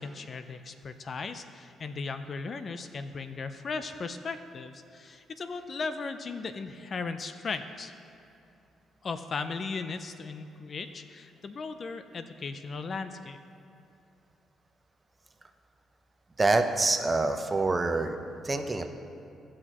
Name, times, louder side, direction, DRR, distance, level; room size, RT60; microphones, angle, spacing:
voice 1, 0.0-7.9 9.0-13.4, left 4 dB, 45° left, 9 dB, 0.5 m, -37 dB
voice 2, 16.4-18.2 18.4-18.9, right 3 dB, 25° right, 6 dB, 0.7 m, -26 dB
17.0 x 6.2 x 3.0 m, 2.7 s
cardioid pair, 90°, 0 cm